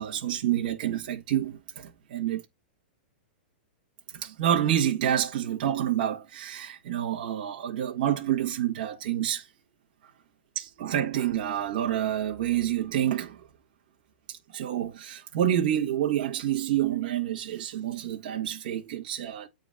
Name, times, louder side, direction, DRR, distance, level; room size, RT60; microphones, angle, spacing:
voice 1, 0.0-2.4 4.1-9.5 10.5-13.5 14.3-19.5, right 11 dB, 55° right, 1.4 m, -28 dB
9.3 x 4.0 x 3.9 m
supercardioid pair, 165°, 6 cm